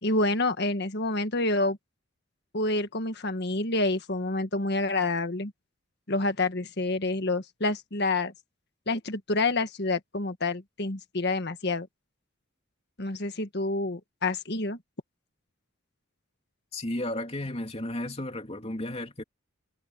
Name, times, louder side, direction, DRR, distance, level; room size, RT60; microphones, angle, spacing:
voice 1, 0.0-1.8 2.5-5.5 6.1-8.3 8.9-11.9 13.0-14.8, left 2 dB, 50° left, 1.7 m, -28 dB
voice 2, 16.7-19.2, left 1 dB, 30° left, 3.3 m, -33 dB
head